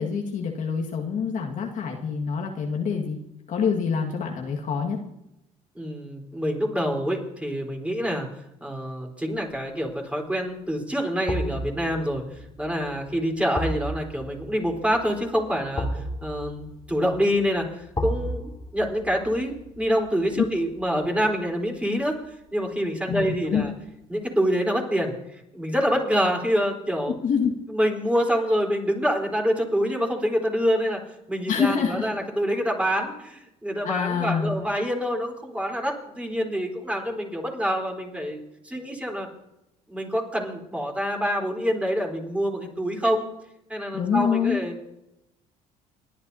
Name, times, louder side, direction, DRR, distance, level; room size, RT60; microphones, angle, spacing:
voice 1, 0.0-3.2 3.5-5.0 20.3-20.4 23.1-23.6 27.2-27.5 31.5-32.1 33.8-34.6 43.9-44.6, left 6 dB, 55° left, 0 dB, 1.8 m, -26 dB
voice 2, 5.8-8.3 8.6-12.2 12.6-22.2 22.5-23.7 24.1-25.1 25.5-27.1 27.7-31.0 31.3-39.3 39.9-43.3 43.7-44.9, equal, 10° right, 0 dB, 3.8 m, -26 dB
sound 1, 9.5-9.9 11.3-22.3 22.6-22.7, equal, 25° left, 2.4 m, -35 dB
29.5 x 10.5 x 2.8 m, 0.87 s
supercardioid pair, 70°, 16 cm